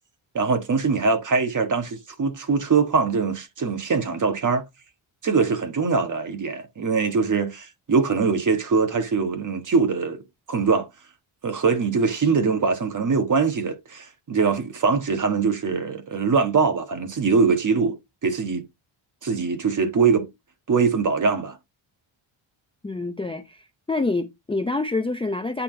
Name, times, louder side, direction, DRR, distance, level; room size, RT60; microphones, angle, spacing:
voice 1, 0.3-4.6 5.2-10.2 10.5-10.9 11.4-17.9 18.2-18.6 19.2-20.3 20.7-21.6, right 5 dB, 40° right, 1.5 m, -22 dB
voice 2, 22.8-25.6, left 3 dB, 10° left, 0.5 m, -27 dB
8.6 x 3.5 x 4.4 m
cardioid pair, 125°, 48 cm